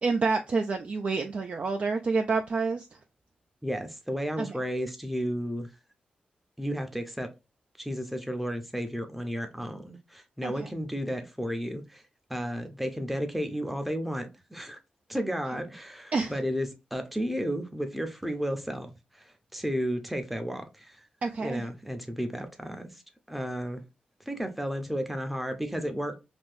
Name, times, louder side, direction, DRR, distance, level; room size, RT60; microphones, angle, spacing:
voice 1, 0.0-2.9 4.4-4.6 10.4-10.7 16.1-16.3 21.2-21.6, right 4 dB, 45° right, 0.3 m, -28 dB
voice 2, 3.6-5.7 6.6-7.3 7.8-12.0 12.3-14.8 15.1-21.0 21.4-23.0 23.3-23.8 24.3-26.2, equal, 5° right, 0.6 m, -33 dB
3.4 x 2.7 x 2.5 m
wide cardioid pair, 110°, 3 cm